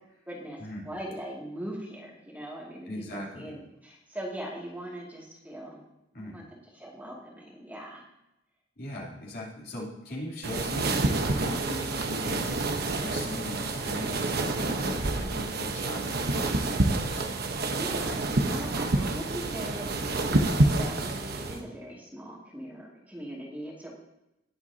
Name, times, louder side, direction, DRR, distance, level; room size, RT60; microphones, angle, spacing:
voice 1, 0.3-5.8 6.2-8.1 17.7-23.9, right 1 dB, 10° right, -4 dB, 2.4 m, -40 dB
voice 2, 2.9-3.5 6.1-6.4 8.8-12.7 13.0-17.3, left 1 dB, 50° left, -4 dB, 3.2 m, -39 dB
sound 1, 10.4-21.6, right 2 dB, 55° right, 1.1 m, -28 dB
19.5 x 8.0 x 2.8 m, 0.89 s
head